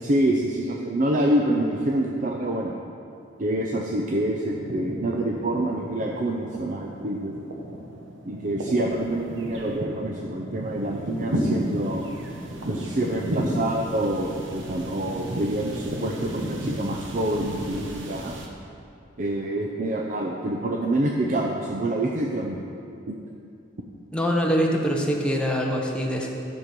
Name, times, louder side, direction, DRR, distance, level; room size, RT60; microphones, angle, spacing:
voice 1, 0.0-2.7 3.4-7.3 8.2-12.0 12.6-18.4 19.2-22.6 23.1-23.2, right 1 dB, 40° right, 0 dB, 0.6 m, -26 dB
sound 1, 3.3-4.0 4.2-18.5, equal, 80° right, 1.1 m, -33 dB
voice 2, 24.1-26.3, equal, 5° left, -1 dB, 0.9 m, -24 dB
10.0 x 6.5 x 5.3 m, 2.6 s
head